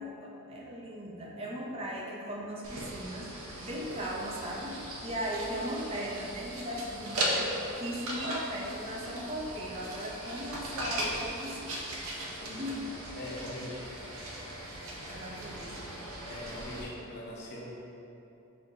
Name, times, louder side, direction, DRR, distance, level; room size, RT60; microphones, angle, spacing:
voice 1, 0.0-7.5 7.8-11.8 12.6-12.9 15.1-15.8, equal, 25° right, -3 dB, 0.5 m, -38 dB
sound 1, 2.6-16.8, right 1 dB, 90° right, 0.6 m, -38 dB
voice 2, 12.3-12.7 13.1-13.9 14.2-14.5 15.0-15.3 16.3-17.7, left 1 dB, 50° left, -4 dB, 0.7 m, -43 dB
6.3 x 2.7 x 2.5 m, 2.9 s
head